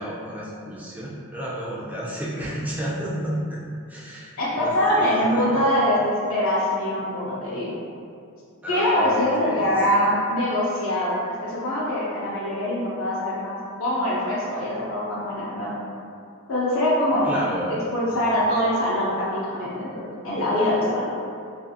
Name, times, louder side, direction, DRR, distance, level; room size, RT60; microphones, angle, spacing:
voice 1, 0.0-3.6 3.9-5.6 8.6-9.8 17.2-17.8 18.1-18.4, equal, 5° right, -7 dB, 0.3 m, -32 dB
voice 2, 4.4-7.7 8.7-13.5 13.8-15.7 16.5-17.3 17.7-21.1, left 1 dB, 65° left, -7 dB, 0.5 m, -23 dB
2.4 x 2.4 x 2.7 m, 2.4 s
head